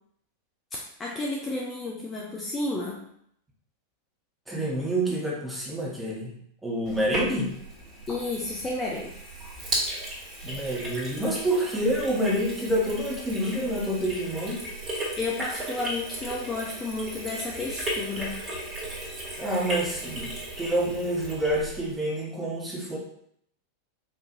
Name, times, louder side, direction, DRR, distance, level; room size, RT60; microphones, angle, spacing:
voice 1, 1.0-3.1 8.1-9.2 15.2-18.5, left 2 dB, 20° left, -3 dB, 0.6 m, -32 dB
voice 2, 4.5-6.3 6.6-7.6 10.4-14.6 19.4-23.0, right 1 dB, 10° right, -4 dB, 1.1 m, -28 dB
Sink (filling or washing), 6.8-21.9, right 1 dB, 25° right, 1.4 m, -36 dB
4.3 x 2.6 x 2.6 m, 0.69 s
figure-of-eight pair, 90°, 0 cm